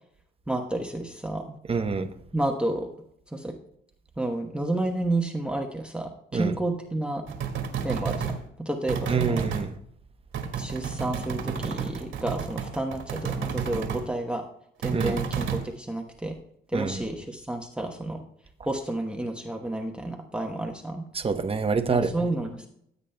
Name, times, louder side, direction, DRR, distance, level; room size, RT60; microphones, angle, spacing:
voice 1, 0.5-1.6 2.3-2.9 3.3-3.5 4.2-7.2 7.8-9.5 10.6-14.4 14.8-16.3 16.7-18.2 18.6-21.0 21.9-22.7, right 1 dB, 5° right, 1.0 m, -30 dB
voice 2, 1.7-2.1 6.3-6.5 9.1-9.7 14.9-15.2 16.7-17.0 21.1-22.1, right 5 dB, 30° right, 0.9 m, -26 dB
sound 1, 7.3-8.4 8.9-9.6 10.3-14.0 14.8-15.6, right 6 dB, 75° right, 1.8 m, -31 dB
16.0 x 8.2 x 2.2 m
cardioid pair, 90°, 20 cm